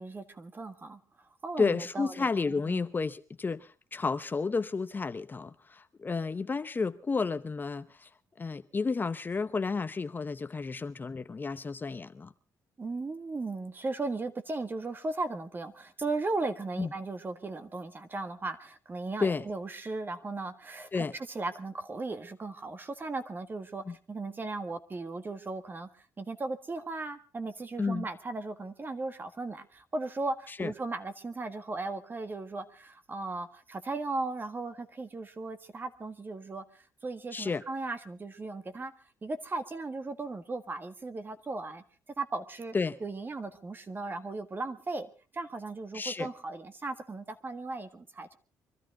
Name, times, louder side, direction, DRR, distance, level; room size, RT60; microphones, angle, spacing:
voice 1, 0.0-2.3 2.7-2.8 12.8-38.9 39.2-41.8 42.2-42.7 43.0-48.4, right 3 dB, 30° right, 1.7 m, -37 dB
voice 2, 1.6-8.1 8.4-12.3 16.8-16.9 19.2-19.4 20.9-21.1 23.9-24.0 27.8-28.1 30.5-30.7 37.3-37.6 42.7-43.0 45.9-46.3, left 4 dB, 30° left, 0.8 m, -31 dB
24.0 x 13.0 x 3.9 m
cardioid pair, 85°, 7 cm